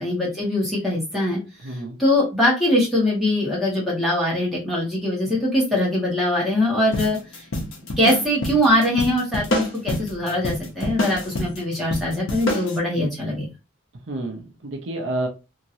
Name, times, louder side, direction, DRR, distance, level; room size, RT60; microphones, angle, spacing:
voice 1, 0.0-1.4 2.0-7.4 8.0-13.5, left 1 dB, ahead, 1.4 m, -22 dB
voice 2, 1.6-2.0 14.1-15.3, right 2 dB, 60° right, 0.6 m, -29 dB
sound 1, 6.9-12.8, left 1 dB, 75° left, 0.9 m, -27 dB
2.8 x 2.8 x 2.7 m
head